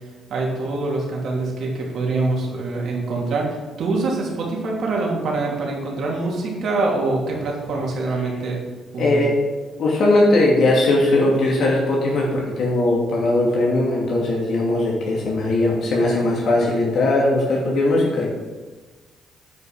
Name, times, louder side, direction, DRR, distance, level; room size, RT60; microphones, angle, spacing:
voice 1, 0.3-8.6 8.9-9.2, right 3 dB, 65° right, -2 dB, 2.9 m, -24 dB
voice 2, 9.0-9.3 9.8-18.3, left 2 dB, 65° left, -3 dB, 2.6 m, -19 dB
9.5 x 5.7 x 5.8 m, 1.3 s
cardioid pair, 90°, 0 cm